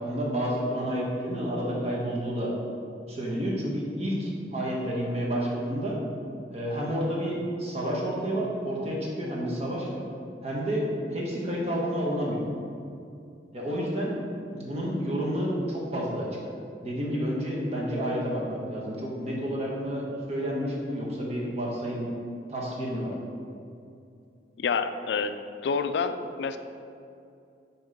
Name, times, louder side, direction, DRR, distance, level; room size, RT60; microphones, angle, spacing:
voice 1, 0.0-2.5 3.1-6.0 6.5-10.0 10.4-10.8 11.1-12.4 13.5-14.1 14.5-16.3 16.8-22.1 22.5-23.1, equal, 35° right, -4 dB, 1.2 m, -30 dB
voice 2, 24.6-25.4 25.6-26.6, left 5 dB, 70° left, 10 dB, 0.3 m, -28 dB
7.2 x 3.1 x 5.1 m, 2.5 s
head